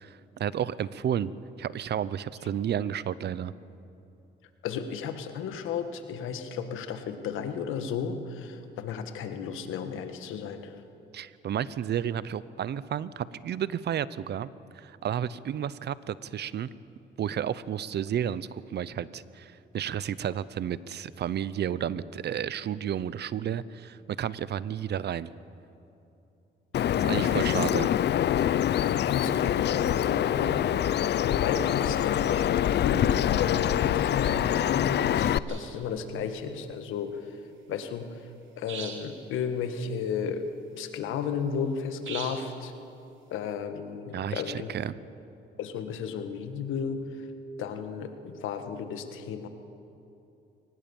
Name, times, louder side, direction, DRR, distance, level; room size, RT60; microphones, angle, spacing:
voice 1, 0.0-1.3 1.6-3.5 11.1-14.5 14.7-16.7 17.2-25.3 27.0-27.9 44.1-45.0, right 9 dB, 60° right, 18 dB, 0.7 m, -32 dB
voice 2, 4.6-10.7 26.7-27.5 28.8-30.7 31.1-32.5 32.8-37.2 37.7-38.1 38.6-40.4 40.8-42.7 43.3-44.7 45.6-47.0 47.6-49.5, left 6 dB, 90° left, 8 dB, 1.6 m, -33 dB
Bird vocalization bird call bird song, 26.7-35.4, left 11 dB, 60° left, 0.6 m, -25 dB
sound 1, 35.5-35.8 38.7-39.2 42.0-42.6, right 7 dB, 75° right, 2.8 m, -40 dB
23.5 x 19.5 x 7.1 m, 2.8 s
cardioid pair, 90°, 20 cm